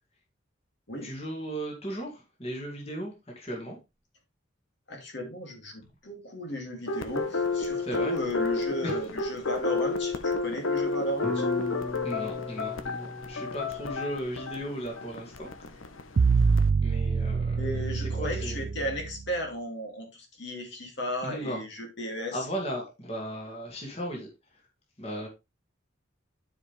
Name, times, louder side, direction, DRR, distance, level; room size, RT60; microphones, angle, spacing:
voice 1, 1.0-3.8 7.8-8.2 8.8-9.0 12.0-15.8 16.8-18.6 21.2-21.6 22.3-24.6 25.0-25.3, right 1 dB, 30° left, 2.3 m, -36 dB
voice 2, 4.9-11.5 17.6-22.4, equal, 60° left, 2.6 m, -35 dB
sound 1, 6.9-16.7, left 4 dB, 85° left, 1.0 m, -31 dB
sound 2, 11.2-15.5, left 1 dB, 5° left, 1.0 m, -39 dB
sound 3, 16.2-19.2, right 5 dB, 50° right, 0.3 m, -25 dB
12.0 x 5.0 x 3.4 m
head